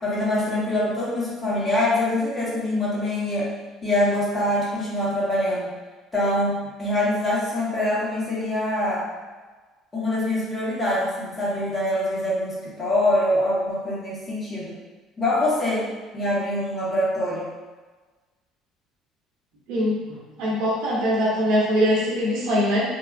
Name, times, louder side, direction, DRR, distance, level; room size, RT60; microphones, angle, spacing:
voice 1, 0.0-3.5 3.8-5.7 6.1-9.0 9.9-14.8 15.2-15.9 16.1-17.5, left 1 dB, 30° left, -8 dB, 1.4 m, -24 dB
voice 2, 19.7-22.8, equal, 75° right, -7 dB, 1.1 m, -22 dB
3.4 x 2.3 x 2.5 m, 1.3 s
hypercardioid pair, 65°, 0 cm